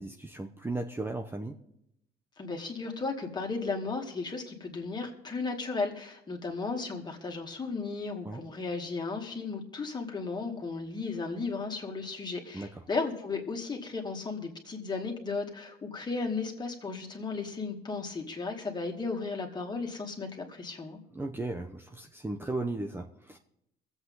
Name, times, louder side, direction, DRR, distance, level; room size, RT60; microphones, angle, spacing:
voice 1, 0.0-1.5 8.2-8.4 12.5-12.7 21.1-23.4, right 2 dB, 15° right, 4 dB, 1.0 m, -36 dB
voice 2, 2.4-21.0, left 4 dB, 25° left, 2 dB, 2.4 m, -35 dB
23.0 x 8.1 x 3.9 m, 0.79 s
cardioid pair, 110°, 17 cm